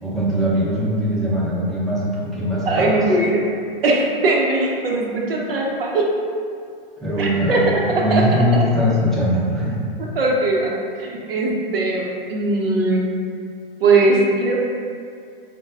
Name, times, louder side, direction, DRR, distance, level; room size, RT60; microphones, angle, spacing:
voice 1, 0.0-3.1 7.0-9.8, equal, ahead, -10 dB, 0.6 m, -21 dB
voice 2, 2.6-3.4 3.8-6.0 7.2-7.6 8.1-8.2 8.5-8.6 10.1-10.7 11.0-13.1 13.8-14.6, right 2 dB, 75° right, -2 dB, 0.8 m, -19 dB
5.0 x 2.2 x 2.6 m, 2.2 s
hypercardioid pair, 120°, 29 cm